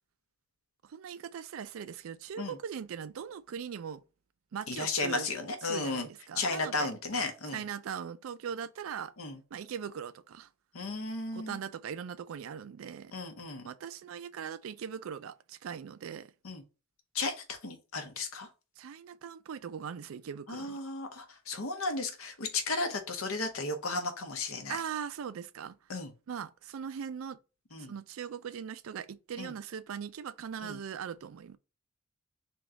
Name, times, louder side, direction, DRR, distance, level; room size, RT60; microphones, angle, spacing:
voice 1, 0.8-4.0 4.5-5.3 5.7-6.9 7.5-9.1 9.5-10.5 11.3-13.1 13.6-16.3 18.8-20.8 24.7-25.8 26.3-27.4 27.8-31.6, right 7 dB, 75° right, 0.4 m, -40 dB
voice 2, 4.7-6.1 6.4-7.6 9.2-9.4 10.7-11.6 13.1-13.7 16.4-16.6 17.1-18.5 20.5-24.8 25.9-26.1 27.7-27.9 29.4-29.5 30.6-30.8, left 3 dB, 90° left, 0.9 m, -34 dB
3.5 x 3.0 x 3.7 m
head